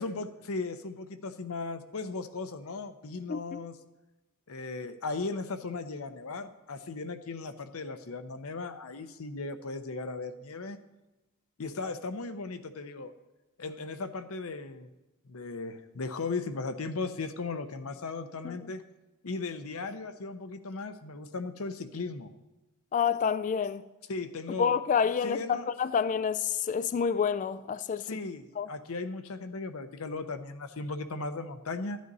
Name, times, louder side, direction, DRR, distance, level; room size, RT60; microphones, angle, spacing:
voice 1, 0.0-3.8 4.5-10.8 11.6-13.1 13.6-14.9 15.3-18.8 19.2-22.3 24.1-24.7 25.2-25.6 28.0-32.0, left 3 dB, 70° left, 0.8 m, -37 dB
voice 2, 3.3-3.6 18.4-18.6 22.9-23.8 24.6-28.0 28.6-28.7, left 7 dB, 35° left, 0.3 m, -28 dB
14.0 x 9.4 x 4.1 m
head